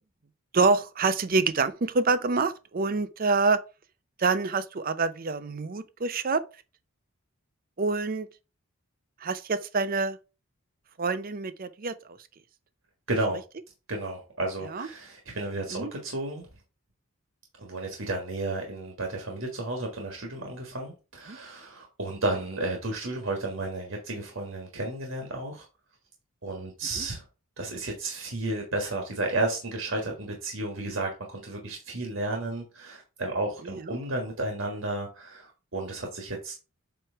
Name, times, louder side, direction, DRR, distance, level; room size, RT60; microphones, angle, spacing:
voice 1, 0.5-3.6 4.2-6.4 7.8-8.3 9.2-10.2 11.0-12.0 14.7-14.9 15.7-15.9 21.3-21.4 27.0-27.1, right 4 dB, 40° right, 0.5 m, -26 dB
voice 2, 13.1-13.4 13.9-16.5 17.6-25.6 26.4-27.2 27.6-36.5, right 2 dB, 65° right, 1.5 m, -32 dB
7.7 x 3.1 x 4.5 m
head